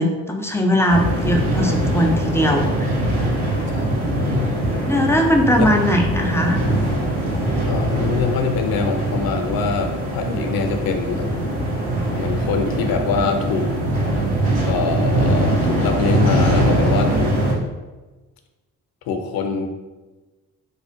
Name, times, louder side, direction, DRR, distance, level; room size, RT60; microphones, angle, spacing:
voice 1, 0.0-2.9 4.9-6.6, equal, 5° left, 1 dB, 0.4 m, -19 dB
sound 1, 0.9-17.5, right 1 dB, 65° right, 1.0 m, -22 dB
voice 2, 7.7-11.5 12.2-13.7 14.6-17.3 19.1-19.7, left 5 dB, 55° left, 5 dB, 0.6 m, -24 dB
3.2 x 2.4 x 3.5 m, 1.2 s
figure-of-eight pair, 40°, 45 cm